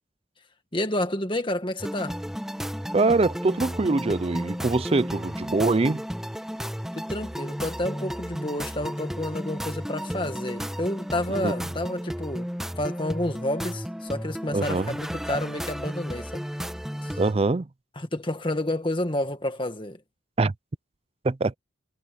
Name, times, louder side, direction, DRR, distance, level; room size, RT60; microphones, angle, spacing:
voice 1, 0.7-2.2 7.0-12.5 12.8-16.4 17.0-17.2 18.0-20.0, left 1 dB, 25° left, 1.8 m, -30 dB
sound 1, 1.8-17.3, equal, ahead, 1.1 m, -33 dB
voice 2, 2.9-6.0 11.3-11.5 14.5-14.9 17.2-17.7 20.4-20.5 21.2-21.5, right 3 dB, 30° right, 0.4 m, -23 dB
head